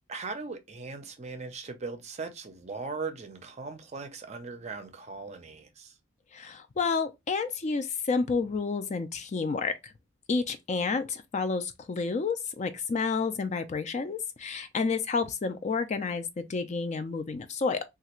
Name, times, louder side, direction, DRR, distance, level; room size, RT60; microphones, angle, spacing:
voice 1, 0.1-5.9, right 4 dB, 30° right, 0.5 m, -39 dB
voice 2, 6.3-9.9 10.3-17.8, left 4 dB, 35° left, 0.3 m, -30 dB
3.3 x 2.4 x 2.9 m
head